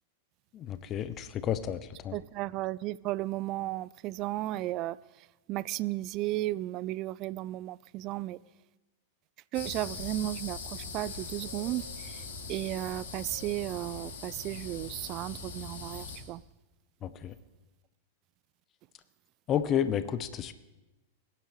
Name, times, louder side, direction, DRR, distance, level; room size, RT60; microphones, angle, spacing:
voice 1, 0.5-2.2 17.0-17.3 19.5-20.6, left 9 dB, 30° left, 0.7 m, -31 dB
voice 2, 2.1-5.0 5.5-8.4 9.5-12.2 12.5-16.4, right 16 dB, 40° right, 0.3 m, -34 dB
sound 1, 9.5-16.2, left 4 dB, 60° left, 3.0 m, -41 dB
20.5 x 10.5 x 3.2 m
figure-of-eight pair, 95°, 0 cm